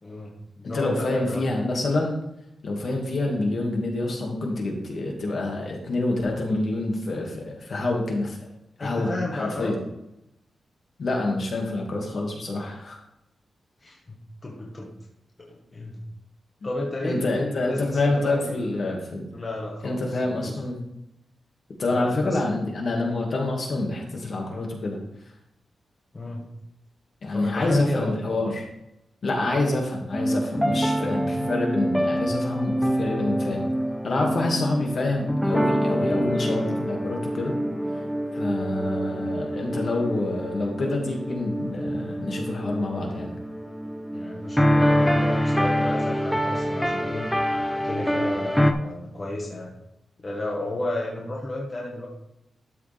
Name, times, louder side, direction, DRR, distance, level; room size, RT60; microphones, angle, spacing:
voice 1, 0.0-1.4 8.8-9.7 13.8-14.2 14.4-14.9 15.4-16.0 16.6-18.6 19.3-20.6 21.9-22.4 26.1-26.5 27.3-28.1 44.1-47.3 47.7-49.7 50.2-52.1, left 2 dB, 25° left, -3 dB, 1.6 m, -32 dB
voice 2, 0.6-2.1 2.6-8.5 8.8-9.8 11.0-13.0 17.0-19.3 19.8-20.8 21.8-25.0 27.2-28.6 29.2-33.6 34.0-37.5 38.3-43.3, left 2 dB, 50° left, 0 dB, 2.2 m, -27 dB
pianomotive (with strings), 30.1-48.7, equal, 5° left, 0.6 m, -26 dB
12.5 x 6.8 x 3.5 m, 0.85 s
wide cardioid pair, 165°, 0 cm